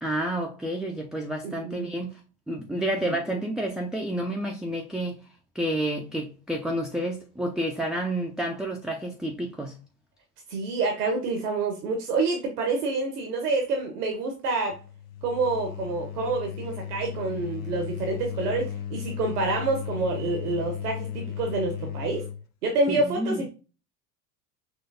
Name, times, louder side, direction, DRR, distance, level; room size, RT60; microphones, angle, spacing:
voice 1, 0.0-2.2 2.5-5.2 5.5-9.8 22.9-23.4, right 1 dB, ahead, 0.6 m, -30 dB
voice 2, 1.4-1.9 3.0-3.2 10.5-14.8 15.2-22.3 22.6-23.5, right 3 dB, 75° right, 1.3 m, -27 dB
sound 1, 14.7-22.5, left 9 dB, 50° left, 0.6 m, -35 dB
5.8 x 3.2 x 2.7 m
figure-of-eight pair, 70°, 47 cm